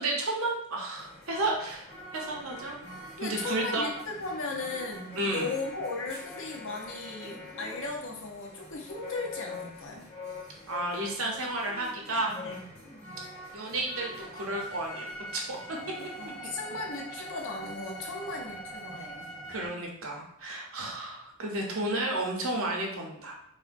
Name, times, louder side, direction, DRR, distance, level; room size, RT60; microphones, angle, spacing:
voice 1, 0.0-1.9 2.1-2.8 3.2-3.9 5.2-5.5 10.7-12.4 13.5-15.8 19.5-23.3, right 2 dB, 65° right, 0 dB, 0.7 m, -32 dB
sound 1, 0.9-19.7, equal, 30° left, 0.9 m, -44 dB
voice 2, 3.2-10.0 12.4-12.6 16.0-19.3, left 3 dB, 60° left, 1 dB, 0.6 m, -37 dB
3.7 x 2.1 x 2.5 m, 0.72 s
head